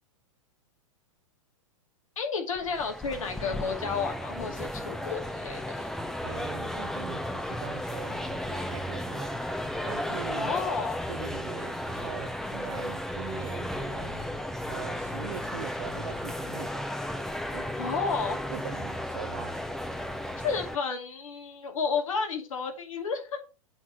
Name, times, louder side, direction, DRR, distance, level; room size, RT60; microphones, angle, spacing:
voice 1, 2.2-5.9 10.3-11.0 17.8-18.4 20.4-23.4, left 5 dB, 75° left, 2.4 m, -31 dB
sound 1, 2.6-20.8, left 1 dB, ahead, 0.8 m, -34 dB
voice 2, 6.2-9.4 9.9-10.5 11.1-14.3 14.7-16.9 17.5-17.7 18.5-19.6, right 11 dB, 65° right, 0.8 m, -42 dB
8.3 x 3.6 x 6.0 m
hypercardioid pair, 110°, 17 cm